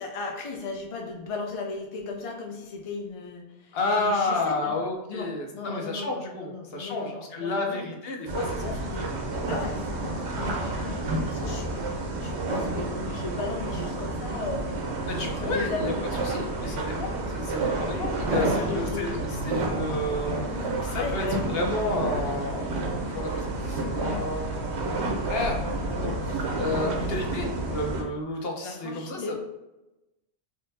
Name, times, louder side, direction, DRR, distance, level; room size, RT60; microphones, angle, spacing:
voice 1, 0.0-4.8 5.1-7.9 8.7-9.1 9.4-11.8 12.2-15.9 16.6-16.8 17.7-17.8 18.3-19.0 19.7-19.9 20.5-20.7 20.9-21.4 23.0-23.1 26.8-27.0 28.6-29.3, left 3 dB, 45° left, 1 dB, 0.5 m, -36 dB
voice 2, 3.7-8.9 15.1-15.9 16.2-24.7 25.2-29.2, left 2 dB, 65° left, 1 dB, 0.8 m, -31 dB
sound 1, 8.3-28.0, right 2 dB, 75° right, 0.9 m, -30 dB
3.6 x 2.6 x 2.7 m, 1.0 s
omnidirectional pair, 1.1 m